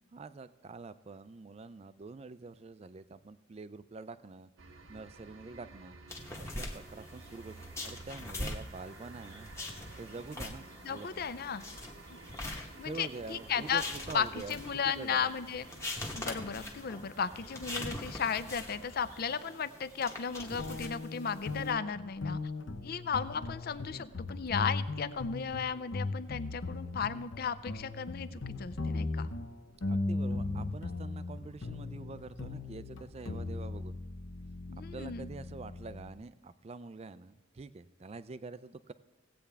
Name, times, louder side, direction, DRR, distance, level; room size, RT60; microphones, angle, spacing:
voice 1, 0.1-4.5 4.9-6.0 6.3-7.6 7.8-9.5 10.0-11.1 12.8-14.6 14.8-15.3 29.9-34.0 34.9-38.9, right 3 dB, 30° right, 14 dB, 0.4 m, -46 dB
sound 1, 4.6-19.2, right 3 dB, 75° right, 1.0 m, -53 dB
sound 2, 6.1-21.7, left 1 dB, 15° left, 1.1 m, -43 dB
voice 2, 10.8-11.7 12.1-12.2 12.8-13.8 14.1-15.7 16.1-22.4 22.8-29.3 34.7-35.3, left 6 dB, 50° left, 14 dB, 0.4 m, -35 dB
sound 3, 20.6-36.1, left 2 dB, 65° left, 0.8 m, -38 dB
17.0 x 8.5 x 3.4 m, 1.1 s
head